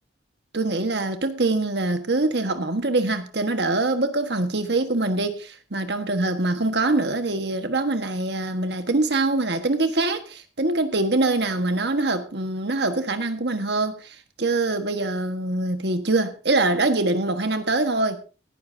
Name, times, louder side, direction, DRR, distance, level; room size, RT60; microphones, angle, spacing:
voice 1, 0.5-18.2, right 2 dB, 60° right, 1.5 m, -24 dB
17.5 x 11.5 x 2.7 m
head